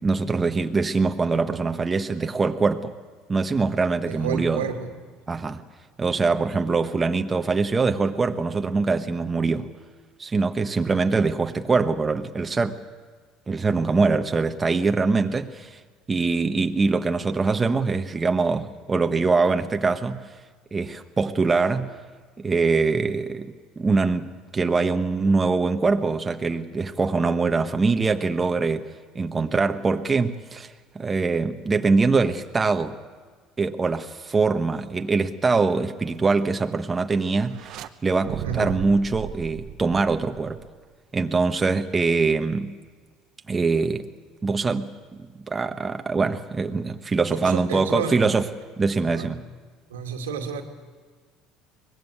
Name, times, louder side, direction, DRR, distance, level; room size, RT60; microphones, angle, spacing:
voice 1, 0.0-2.9 3.3-4.6 5.3-5.6 6.0-9.7 10.2-12.8 13.5-15.8 16.1-20.2 20.7-21.9 22.4-28.9 29.1-33.0 33.6-37.7 38.0-40.6 41.1-42.7 43.5-44.1 44.4-44.9 45.5-48.5 48.8-49.4, right 4 dB, 25° right, 1.3 m, -23 dB
voice 2, 4.0-4.9 38.4-38.8 47.3-48.2 49.0-49.5 49.9-50.6, right 6 dB, 90° right, 2.3 m, -31 dB
sound 1, 37.4-37.9 38.2-40.8, right 10 dB, 60° right, 1.2 m, -36 dB
23.5 x 20.5 x 8.2 m
hypercardioid pair, 70°, 0 cm